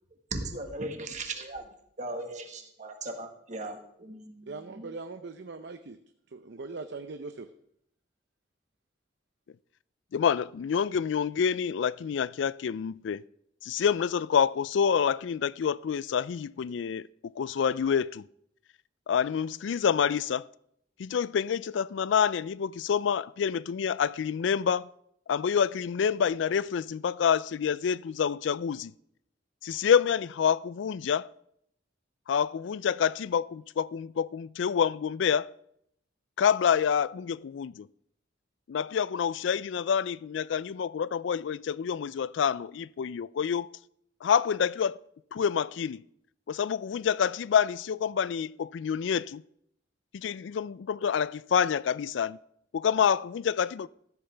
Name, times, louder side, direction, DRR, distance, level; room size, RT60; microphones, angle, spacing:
voice 1, 0.3-1.7 2.0-4.9, right 2 dB, 40° right, 1.5 m, -38 dB
voice 2, 4.5-6.0 6.3-7.5, right 3 dB, 65° right, 0.6 m, -40 dB
voice 3, 10.1-13.2 13.6-18.3 19.1-20.5 21.0-24.9 25.3-28.9 29.6-31.3 32.3-35.5 36.4-37.9 38.7-43.7 44.2-45.0 45.3-46.0 46.5-49.4 50.1-52.4 52.7-53.9, left 7 dB, 70° left, 0.3 m, -27 dB
14.0 x 13.0 x 3.4 m
head